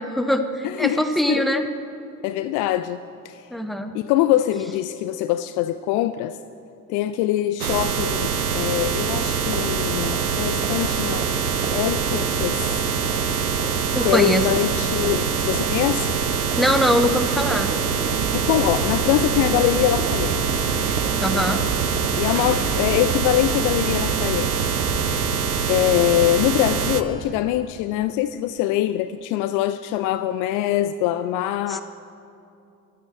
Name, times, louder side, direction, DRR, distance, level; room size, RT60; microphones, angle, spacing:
voice 1, 0.0-1.6 3.5-3.9 13.9-14.5 16.6-17.7 21.2-21.6 31.7-31.8, equal, ahead, 8 dB, 0.9 m, -22 dB
voice 2, 0.6-1.0 1.3-1.4 2.2-3.0 3.2-3.5 3.9-6.4 6.9-11.3 11.7-12.8 14.0-16.2 18.3-20.7 21.3-21.5 22.2-24.8 25.7-31.8, left 13 dB, 45° left, 13 dB, 0.5 m, -23 dB
sound 1, 7.6-27.0, right 6 dB, 90° right, 0.7 m, -24 dB
sound 2, 8.9-23.1, right 3 dB, 20° right, 2.2 m, -36 dB
sound 3, 18.1-25.1, right 4 dB, 55° right, 1.9 m, -31 dB
22.0 x 9.3 x 4.3 m, 2.7 s
figure-of-eight pair, 65°, 43 cm